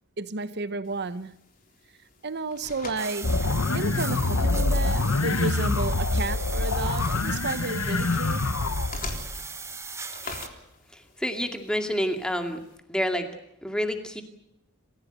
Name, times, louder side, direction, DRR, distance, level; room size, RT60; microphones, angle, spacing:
voice 1, 0.2-1.4 2.2-3.5 3.7-8.5, right 3 dB, 50° right, 1.0 m, -32 dB
sound 1, 0.8-12.8, left 3 dB, 40° left, 3.7 m, -45 dB
sound 2, 3.0-10.5, right 4 dB, 15° right, 1.0 m, -38 dB
sound 3, 3.2-9.0, left 3 dB, 85° left, 1.1 m, -25 dB
voice 2, 10.9-12.6 12.9-13.3 13.6-14.2, equal, 5° left, 2.3 m, -28 dB
26.5 x 15.5 x 8.1 m
head